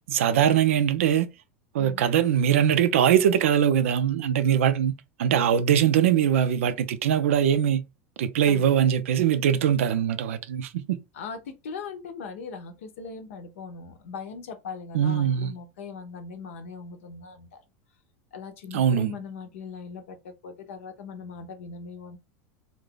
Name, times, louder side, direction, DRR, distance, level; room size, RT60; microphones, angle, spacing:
voice 1, 0.1-1.3 1.7-4.9 5.2-7.8 8.2-11.0 14.9-15.5 18.7-19.1, right 9 dB, 75° right, 0.4 m, -22 dB
voice 2, 1.7-2.1 8.4-8.7 11.1-17.6 18.3-22.2, left 5 dB, 75° left, 0.7 m, -40 dB
2.6 x 2.4 x 3.6 m
hypercardioid pair, 90°, 7 cm